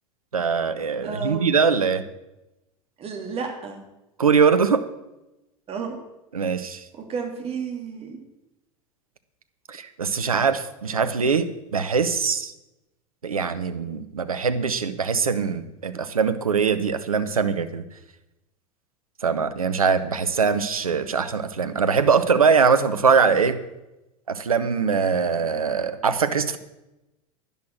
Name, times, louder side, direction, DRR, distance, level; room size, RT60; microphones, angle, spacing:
voice 1, 0.3-2.0 4.2-4.8 6.3-6.8 9.7-12.5 13.2-17.8 19.2-23.6 24.3-26.6, right 5 dB, 80° right, 11 dB, 0.8 m, -22 dB
voice 2, 1.0-1.4 3.0-3.8 5.7-6.0 6.9-8.2, right 5 dB, 35° right, 3 dB, 2.9 m, -32 dB
10.5 x 10.5 x 6.0 m, 0.95 s
figure-of-eight pair, 80°, 18 cm